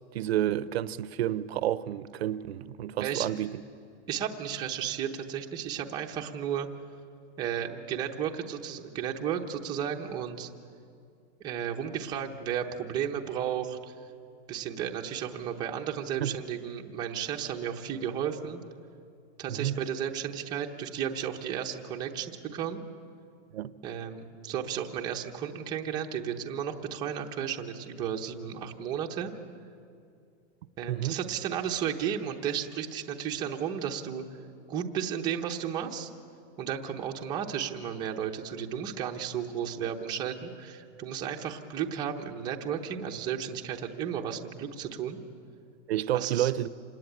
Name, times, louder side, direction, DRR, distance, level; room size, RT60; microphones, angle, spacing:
voice 1, 0.1-3.6 16.2-16.3 19.5-19.7 23.5-23.7 30.9-31.2 45.9-46.7, right 12 dB, 60° right, 0.8 m, -30 dB
voice 2, 4.1-6.7 7.4-10.5 11.4-13.9 14.5-18.6 19.4-22.8 23.8-29.3 30.8-34.2 34.7-36.1 36.6-45.2 46.1-46.5, right 8 dB, 10° right, 0.8 m, -33 dB
27.0 x 18.5 x 10.0 m
supercardioid pair, 175°, 36 cm